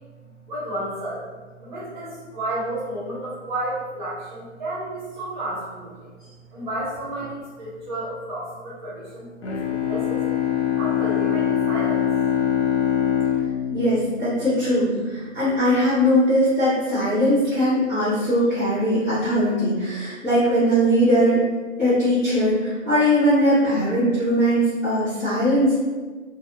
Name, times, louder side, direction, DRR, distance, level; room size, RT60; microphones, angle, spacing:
voice 1, 0.5-1.3 1.6-6.1 6.5-10.2 10.6-12.1, right 1 dB, 35° right, -9 dB, 1.2 m, -32 dB
Bowed string instrument, 9.4-15.0, left 9 dB, 55° left, 0.5 m, -23 dB
voice 2, 13.7-21.4 21.8-25.7, equal, 10° left, -17 dB, 1.0 m, -20 dB
2.5 x 2.3 x 2.9 m, 1.4 s
hypercardioid pair, 160°, 39 cm